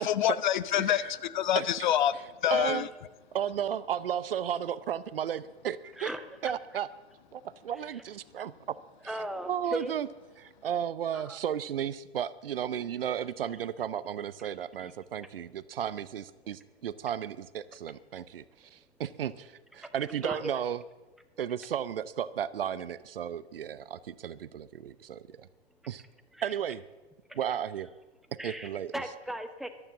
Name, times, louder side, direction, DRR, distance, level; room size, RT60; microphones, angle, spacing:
voice 1, 0.0-2.1 2.4-2.9, left 10 dB, 45° left, 16 dB, 0.7 m, -26 dB
voice 2, 0.8-1.1 1.5-1.7 2.5-2.9 3.3-6.1 6.4-6.9 7.3-8.8 9.0-9.2 9.5-10.1 10.4-20.8 21.4-25.5 25.9-26.0 26.4-26.8 27.3-27.9 28.3-28.9, right 9 dB, 55° right, 17 dB, 0.7 m, -34 dB
voice 3, 6.0-6.5 9.0-10.0 11.1-11.4 14.8-14.9 19.8-19.9 20.2-20.6 26.3-26.5 27.3-27.4 28.4-29.7, right 1 dB, ahead, 8 dB, 0.8 m, -37 dB
14.0 x 12.0 x 7.1 m, 1.1 s
figure-of-eight pair, 110°, 33 cm